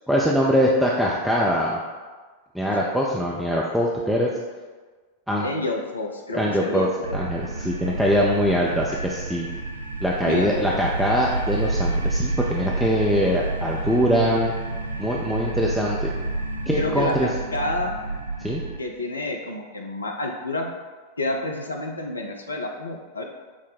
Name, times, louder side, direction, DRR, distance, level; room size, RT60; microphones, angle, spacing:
voice 1, 0.1-1.8 2.5-4.3 5.3-5.4 6.3-6.9 7.1-9.5 10.0-14.5 15.0-16.1 16.7-17.3 18.4-18.6, equal, ahead, -4 dB, 0.4 m, -22 dB
voice 2, 5.4-7.2 10.3-10.6 16.7-17.9 18.8-20.7 21.2-23.2, left 2 dB, 75° left, 1 dB, 0.5 m, -29 dB
sound 1, 7.0-18.8, right 2 dB, 75° right, 0.4 m, -29 dB
5.9 x 2.1 x 4.1 m, 1.4 s
figure-of-eight pair, 90°, 0 cm